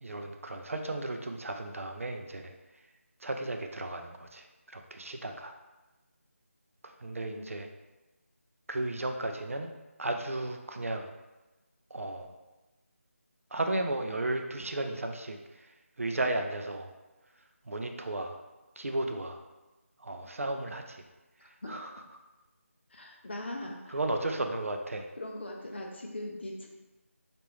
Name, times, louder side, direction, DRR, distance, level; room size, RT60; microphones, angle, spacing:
voice 1, 0.0-2.5 3.2-4.5 4.7-5.5 6.8-7.7 8.7-9.7 10.0-11.1 11.9-12.3 13.5-15.4 16.0-16.9 17.7-18.4 18.8-19.4 20.0-21.0 21.7-21.9 23.9-25.1, right 2 dB, 65° right, 5 dB, 0.4 m, -34 dB
voice 2, 7.2-7.6 21.4-21.8 22.9-24.0 25.2-26.7, left 1 dB, 50° left, 1 dB, 0.6 m, -41 dB
3.3 x 2.5 x 3.2 m, 1.1 s
figure-of-eight pair, 160°, 8 cm